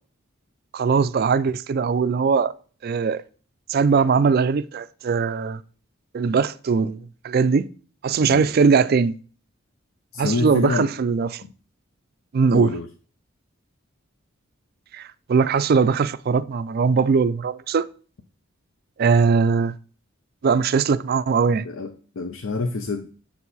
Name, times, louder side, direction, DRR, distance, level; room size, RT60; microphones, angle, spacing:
voice 1, 0.7-2.5 2.8-3.2 3.7-5.6 6.1-7.0 7.2-7.7 8.0-9.2 10.2-11.4 12.3-12.8 14.9-17.9 19.0-19.7 20.4-21.7, right 5 dB, 50° right, 0.3 m, -20 dB
voice 2, 10.1-10.9 11.4-11.5 12.5-12.9 21.6-23.1, left 3 dB, 70° left, 0.6 m, -27 dB
7.4 x 4.6 x 4.1 m
head